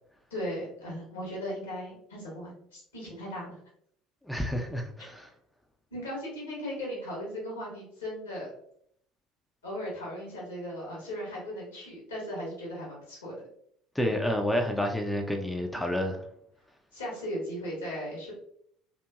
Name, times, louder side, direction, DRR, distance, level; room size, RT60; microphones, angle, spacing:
voice 1, 0.3-3.6 5.9-8.5 9.6-13.3 16.9-18.3, equal, 80° left, -4 dB, 1.2 m, -37 dB
voice 2, 4.2-5.3 14.0-16.2, equal, 5° left, 3 dB, 0.4 m, -29 dB
2.8 x 2.5 x 2.3 m, 0.68 s
figure-of-eight pair, 60°, 0 cm